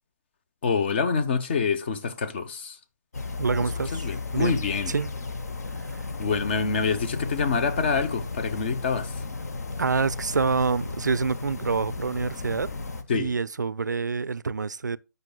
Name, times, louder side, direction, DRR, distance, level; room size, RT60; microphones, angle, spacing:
voice 1, 0.6-2.8 3.9-4.9 6.2-9.1 13.1-13.3, left 5 dB, 35° left, 0.8 m, -26 dB
sound 1, 3.1-13.0, left 3 dB, 60° left, 1.0 m, -34 dB
voice 2, 3.4-4.6 4.9-5.1 5.8-6.1 9.8-12.7 13.1-15.0, right 4 dB, 80° right, 0.4 m, -27 dB
13.0 x 5.4 x 2.3 m
figure-of-eight pair, 145°, 10 cm